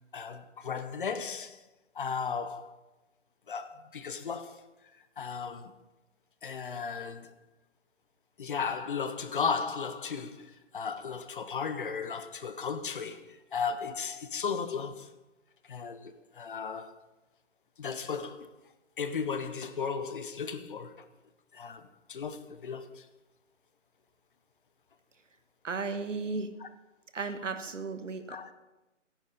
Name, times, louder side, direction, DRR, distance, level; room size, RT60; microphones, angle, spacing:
voice 1, 0.1-1.6 1.9-2.7 3.5-4.6 5.2-5.7 6.4-7.3 8.4-15.1 15.6-17.0 17.8-18.5 19.0-21.1 21.5-21.8 22.1-23.1 26.6-26.7 28.3-28.5, left 6 dB, 45° left, 0.8 m, -35 dB
voice 2, 25.6-26.5 27.1-28.5, right 4 dB, 75° right, 1.3 m, -35 dB
14.0 x 10.5 x 3.9 m
figure-of-eight pair, 150°, 38 cm